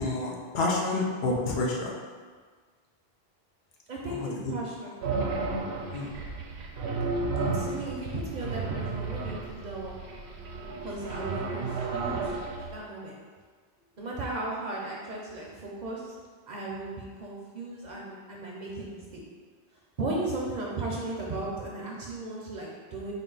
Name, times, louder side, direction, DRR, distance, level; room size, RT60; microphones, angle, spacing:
voice 1, 0.0-1.9 5.9-6.1, left 2 dB, 70° left, -1 dB, 0.8 m, -28 dB
voice 2, 3.9-5.0 7.5-9.9 10.8-13.2 14.0-16.2 16.5-19.0 20.0-23.1, right 2 dB, 50° right, -3 dB, 0.6 m, -36 dB
sound 1, 5.0-12.8, right 3 dB, 80° right, 0.8 m, -33 dB
3.9 x 2.3 x 3.8 m, 1.5 s
omnidirectional pair, 1.1 m